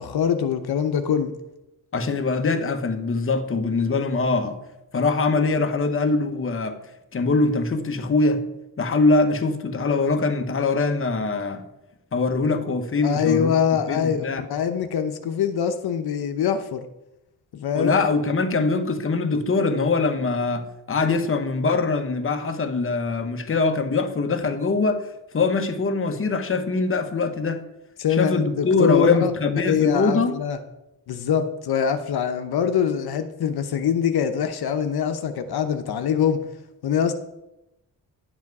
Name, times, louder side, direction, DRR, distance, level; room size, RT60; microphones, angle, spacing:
voice 1, 0.0-1.3 13.0-16.8 17.5-18.0 28.0-30.6 31.1-36.4 36.8-37.1, left 7 dB, 85° left, 0.9 m, -23 dB
voice 2, 1.9-4.6 4.9-6.8 7.1-8.4 8.8-11.6 12.1-14.4 17.7-25.1 25.3-27.6 28.1-30.4, left 3 dB, 35° left, 1.1 m, -23 dB
11.0 x 7.4 x 4.7 m
wide cardioid pair, 105°, 37 cm